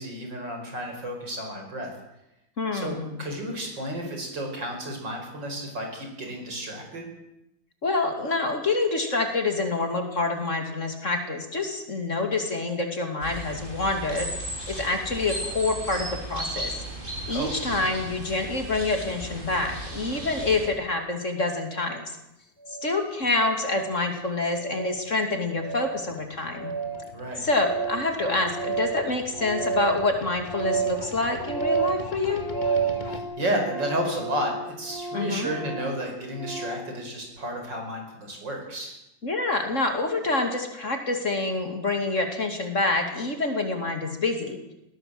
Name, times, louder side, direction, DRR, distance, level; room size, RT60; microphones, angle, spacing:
voice 1, 0.0-1.9 2.7-7.1 17.3-17.5 27.1-27.4 33.0-39.0, right 1 dB, 70° right, 2 dB, 5.9 m, -32 dB
voice 2, 2.6-3.2 7.8-16.8 17.3-22.2 22.7-26.7 27.4-32.4 35.1-35.5 39.2-44.6, left 3 dB, 40° left, 5 dB, 2.9 m, -27 dB
sound 1, 13.2-20.7, right 1 dB, 25° right, 4.7 m, -35 dB
sound 2, 21.7-21.9 22.6-23.0 23.6-24.0 24.6-25.0 25.6-26.0 26.6-33.2, right 6 dB, 25° left, 1.9 m, -30 dB
Organ, 26.1-26.2 26.4-26.5 26.7-27.1 27.4-31.0 31.3-36.9, left 1 dB, 45° right, 7.0 m, -38 dB
20.5 x 17.0 x 7.8 m, 0.87 s
omnidirectional pair, 2.1 m